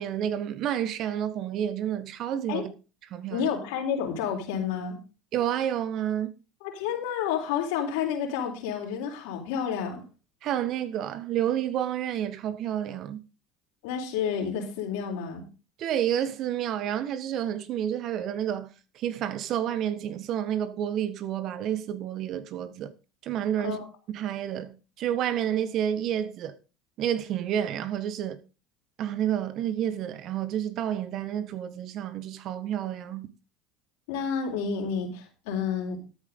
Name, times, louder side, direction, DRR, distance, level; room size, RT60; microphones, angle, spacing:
voice 1, 0.0-2.7 3.1-3.5 5.3-6.3 10.4-13.2 15.8-22.9 23.2-23.8 24.1-26.6 27.0-28.4 29.0-33.3, right 10 dB, 55° right, 1.6 m, -30 dB
voice 2, 3.3-5.0 6.6-10.0 13.8-15.5 23.6-23.9 34.1-36.0, left 7 dB, 75° left, 4.0 m, -30 dB
13.0 x 9.2 x 3.9 m
hypercardioid pair, 90°, 0 cm